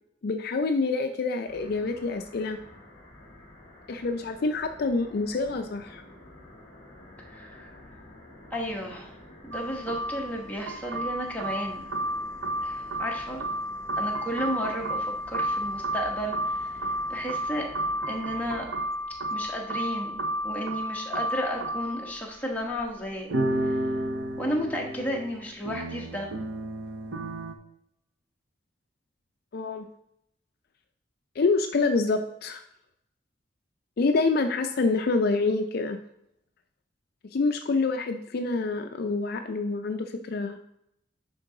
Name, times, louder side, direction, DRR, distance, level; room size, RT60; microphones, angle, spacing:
voice 1, 0.2-2.6 3.9-6.0 29.5-29.9 31.4-32.6 34.0-36.0 37.3-40.6, left 3 dB, 55° left, 6 dB, 0.4 m, -27 dB
sound 1, 1.5-18.7, left 1 dB, 30° left, 1.5 m, -50 dB
voice 2, 7.3-7.7 8.5-9.1 9.4-11.9 12.6-13.5 14.0-17.7 18.1-18.7 19.3-20.2 20.4-23.3 23.7-23.8 24.4-26.3, equal, 10° left, -2 dB, 1.1 m, -33 dB
sound 2, 9.5-22.2 22.9-23.0 23.3-27.5, right 1 dB, 80° right, 0.7 m, -32 dB
10.5 x 3.8 x 3.8 m, 0.78 s
head